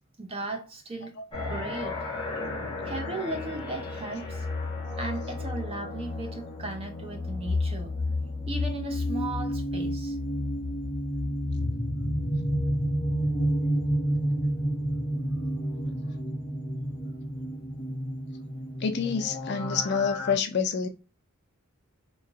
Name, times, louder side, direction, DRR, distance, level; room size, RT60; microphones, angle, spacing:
voice 1, 0.2-1.1 1.5-2.0 2.8-4.4 5.0-7.9 8.5-10.2 17.7-17.9, right 2 dB, 25° right, 0.6 m, -36 dB
sound 1, 1.3-20.3, equal, 20° left, 1.0 m, -31 dB
voice 2, 18.8-20.9, left 6 dB, 50° left, 0.4 m, -28 dB
3.0 x 2.4 x 2.3 m
head